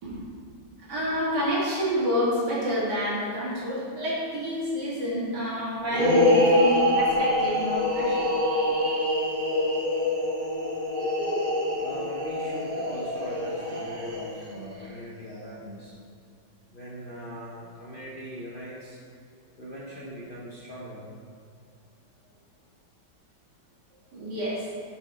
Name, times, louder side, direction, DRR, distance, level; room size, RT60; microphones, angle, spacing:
voice 1, 0.9-8.2 24.1-24.6, equal, 65° right, -7 dB, 2.5 m, -28 dB
sound 1, 5.9-14.5, left 1 dB, 50° right, 1.6 m, -25 dB
voice 2, 11.8-15.9 16.7-19.0 19.6-21.1, equal, 45° left, -6 dB, 0.7 m, -40 dB
6.8 x 4.5 x 4.7 m, 2.3 s
omnidirectional pair, 1.9 m